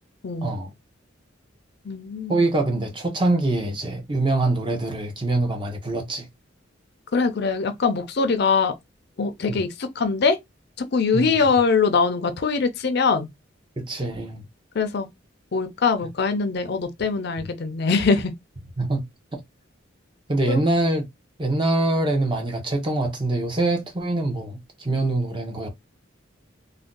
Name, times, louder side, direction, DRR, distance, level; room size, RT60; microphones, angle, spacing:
voice 1, 0.4-0.7 2.3-6.3 9.5-9.6 11.1-11.4 13.8-14.4 17.4-17.5 18.8-19.0 19.3-19.4 20.3-21.0 21.4-25.7, right 2 dB, 25° right, 0.7 m, -24 dB
voice 2, 1.9-2.4 7.1-8.7 9.2-10.4 10.8-13.3 14.7-15.1 15.5-18.3 20.5-20.6, left 4 dB, 55° left, 0.5 m, -22 dB
2.5 x 2.2 x 3.7 m
head